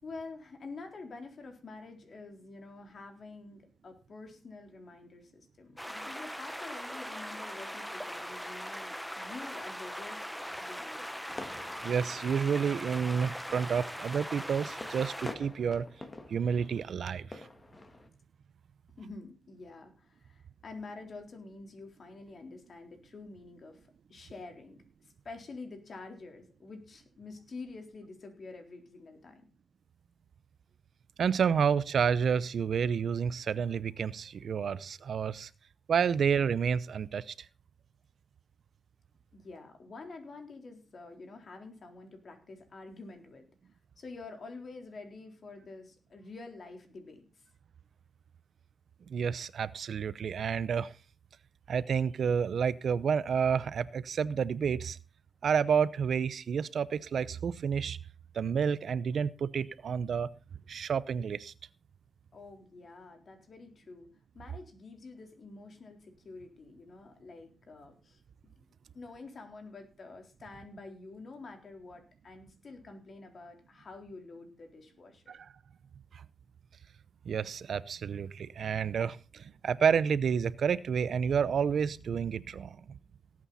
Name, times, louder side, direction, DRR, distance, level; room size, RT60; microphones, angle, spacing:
voice 1, 0.0-11.2 18.0-18.1 19.0-29.4 39.3-43.5 44.0-47.4 62.3-68.6 68.9-75.4, left 3 dB, 50° left, 3.8 m, -48 dB
sound 1, 5.8-15.3, equal, ahead, 1.2 m, -40 dB
sound 2, 11.3-18.1, left 2 dB, 30° left, 2.1 m, -48 dB
voice 2, 11.8-15.9 16.3-17.5 31.2-35.5 35.9-37.3 49.1-50.9 51.7-55.0 55.4-58.0 58.3-60.3 60.7-61.5 75.3-75.5 76.1-76.2 77.2-83.0, right 7 dB, 70° right, 0.7 m, -30 dB
18.0 x 8.7 x 4.2 m
cardioid pair, 95°, 0 cm